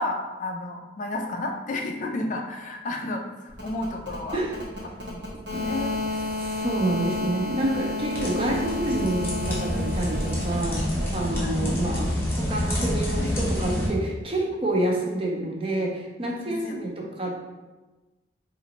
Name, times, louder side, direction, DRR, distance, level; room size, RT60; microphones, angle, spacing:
voice 1, 0.0-4.4 4.9-6.0 11.4-11.6 12.7-13.5 16.5-16.8, left 2 dB, 40° left, 3 dB, 0.4 m, -32 dB
sound 1, 3.5-11.4, left 3 dB, 75° right, 0.9 m, -32 dB
voice 2, 6.4-12.1 12.4-17.5, right 1 dB, 30° right, -1 dB, 0.6 m, -28 dB
sound 2, 8.1-13.9, equal, 10° left, 0.7 m, -28 dB
4.0 x 2.5 x 2.9 m, 1.2 s
head